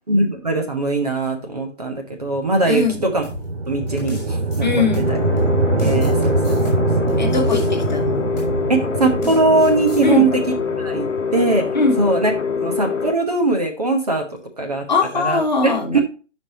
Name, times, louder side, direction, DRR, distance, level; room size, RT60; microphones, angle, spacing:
voice 1, 0.1-3.2 3.7-5.2 5.8-7.4 8.7-10.4 10.8-11.6 12.0-12.3 12.6-14.2 14.6-14.8 15.1-16.0, right 2 dB, 30° right, 2 dB, 1.1 m, -21 dB
sound 1, 2.3-12.6, right 3 dB, 55° right, 0.8 m, -23 dB
voice 2, 2.7-3.0 4.6-5.2 7.2-8.3 10.0-10.3 11.7-12.0 14.9-16.0, left 4 dB, 35° left, 3 dB, 1.3 m, -20 dB
sound 2, 3.2-5.4 5.8-8.0 8.4-8.6 9.0-10.0, left 2 dB, 15° left, 3.0 m, -35 dB
sound 3, 5.1-13.1, left 5 dB, 90° left, 1.0 m, -24 dB
10.5 x 5.5 x 2.8 m, 0.35 s
figure-of-eight pair, 170°, 37 cm